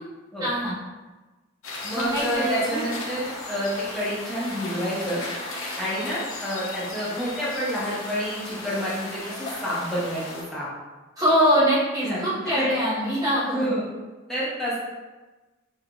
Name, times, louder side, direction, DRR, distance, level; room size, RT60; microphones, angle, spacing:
voice 1, 0.4-0.7 1.9-2.8 11.2-13.7, equal, 20° right, -9 dB, 1.1 m, -23 dB
sound 1, 1.6-10.4, left 2 dB, 85° left, 0.8 m, -36 dB
voice 2, 1.8-5.2 5.8-10.7 12.0-12.2 12.5-12.7 13.5-13.8 14.3-14.8, equal, ahead, -10 dB, 1.0 m, -28 dB
5.7 x 2.6 x 2.4 m, 1.2 s
head